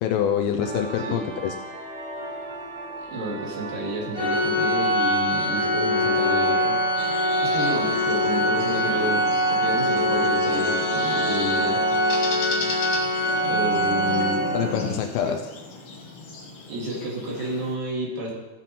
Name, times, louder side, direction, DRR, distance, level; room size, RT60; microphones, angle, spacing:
voice 1, 0.0-1.5 14.5-15.4, left 9 dB, 85° left, 5 dB, 2.4 m, -25 dB
sound 1, 0.6-14.9, right 1 dB, 45° right, 3.0 m, -35 dB
voice 2, 3.1-6.8 7.4-11.8 13.5-14.4 15.2-15.3 16.7-18.3, right 1 dB, 70° right, -3 dB, 3.8 m, -30 dB
Organ, 4.1-14.8, equal, 10° right, 2.7 m, -23 dB
sound 2, 7.0-17.8, left 3 dB, 70° left, 1.3 m, -37 dB
15.0 x 5.8 x 4.1 m, 1.1 s
omnidirectional pair, 4.4 m